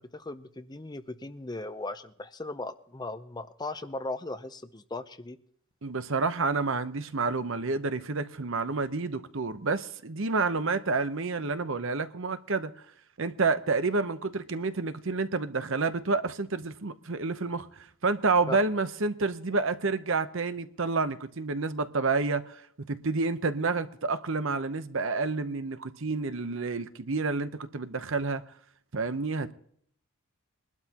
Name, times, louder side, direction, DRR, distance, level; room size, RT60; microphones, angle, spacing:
voice 1, 0.0-5.4 18.5-18.6, left 2 dB, 20° left, 0.6 m, -38 dB
voice 2, 5.8-12.7 13.2-22.6 22.9-28.4 28.9-29.5, right 3 dB, 60° right, 0.9 m, -29 dB
22.0 x 12.0 x 2.9 m
head